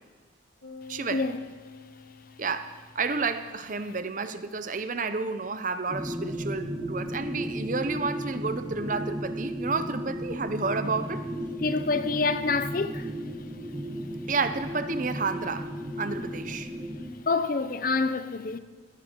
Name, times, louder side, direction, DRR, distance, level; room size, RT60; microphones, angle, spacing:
sound 1, 0.6-3.1, left 5 dB, 70° left, 1.3 m, -48 dB
voice 1, 0.9-1.3 2.4-11.2 14.3-16.7, right 4 dB, 40° right, 0.8 m, -31 dB
sound 2, 5.9-17.1, equal, 25° right, 1.7 m, -35 dB
voice 2, 11.6-13.1 17.3-18.6, left 4 dB, 45° left, 0.6 m, -27 dB
18.5 x 13.0 x 4.6 m
head